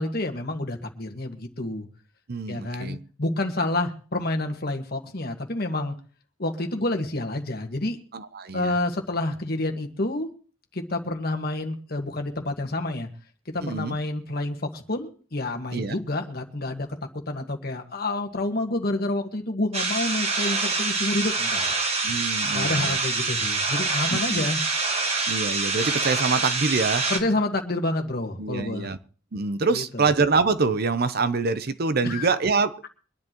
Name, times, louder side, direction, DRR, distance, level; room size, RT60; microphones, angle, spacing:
voice 1, 0.0-1.8 2.5-5.9 6.4-8.0 8.5-10.3 10.7-13.1 13.5-16.9 17.3-21.7 22.5-24.6 27.1-28.9 29.7-30.0 32.0-32.3, left 2 dB, 50° left, 3 dB, 1.6 m, -28 dB
voice 2, 2.3-3.0 8.1-8.7 13.6-14.0 15.7-16.0 22.0-23.0 24.1-24.5 25.3-27.1 28.4-29.0 29.3-32.9, right 4 dB, 50° right, 12 dB, 0.7 m, -25 dB
sound 1, 19.7-27.2, right 3 dB, 30° right, 1.6 m, -26 dB
24.0 x 10.5 x 3.0 m, 0.40 s
head